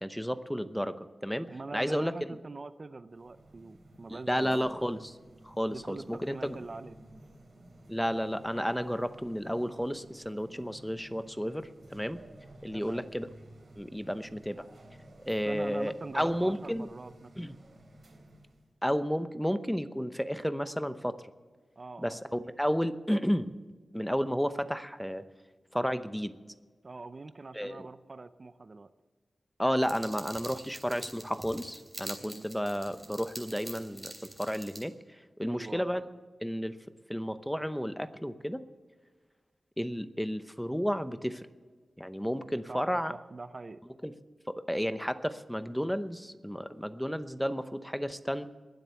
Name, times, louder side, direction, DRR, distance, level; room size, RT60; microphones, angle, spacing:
voice 1, 0.0-2.3 4.1-5.2 5.4-6.6 7.9-12.2 12.6-13.3 13.8-14.7 15.3-16.9 17.4-17.6 18.8-21.2 22.0-23.5 23.9-25.2 25.7-26.3 27.5-27.9 29.6-34.1 34.4-36.0 36.4-36.8 37.1-38.6 39.8-41.5 42.0-43.1 44.0-44.1 44.5-48.5, equal, ahead, 11 dB, 0.8 m, -32 dB
voice 2, 1.5-4.7 5.7-7.0 10.5-10.7 12.7-13.0 15.4-17.3 21.8-22.1 26.8-28.9 32.2-32.5 35.4-35.8 42.7-42.8 43.1-43.8, right 3 dB, 45° right, 12 dB, 0.6 m, -43 dB
sound 1, 3.1-18.7, right 1 dB, 65° right, 3.5 m, -54 dB
sound 2, 29.8-34.8, right 1 dB, 15° right, 3.1 m, -45 dB
21.0 x 7.9 x 7.0 m, 1.5 s
wide cardioid pair, 100°, 0 cm